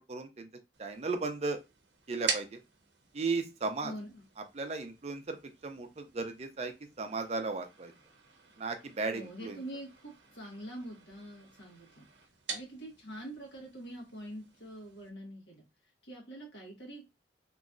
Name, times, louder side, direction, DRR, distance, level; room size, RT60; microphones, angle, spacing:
voice 1, 0.1-0.5 0.8-1.6 2.1-2.6 3.1-3.9 4.5-5.4 5.6-7.9 8.6-9.6, right 3 dB, 35° right, 7 dB, 0.5 m, -35 dB
sound 1, 0.7-15.1, right 5 dB, 90° right, 0.6 m, -45 dB
voice 2, 3.8-4.2 9.1-12.1 12.5-15.6 16.0-17.1, right 1 dB, 85° left, -1 dB, 1.4 m, -45 dB
3.0 x 2.7 x 2.4 m, 0.24 s
head